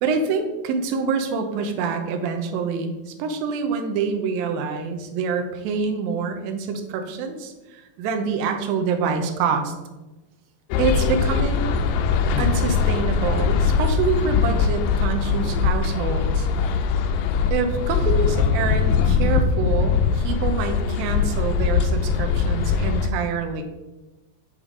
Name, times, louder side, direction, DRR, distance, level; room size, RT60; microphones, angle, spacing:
voice 1, 0.0-9.7 10.8-11.7 12.4-16.5 17.5-23.6, right 5 dB, 80° right, 5 dB, 2.1 m, -26 dB
sound 1, 10.7-23.1, left 5 dB, 85° left, 2.7 m, -21 dB
9.1 x 4.9 x 3.7 m, 1.1 s
omnidirectional pair, 5.0 m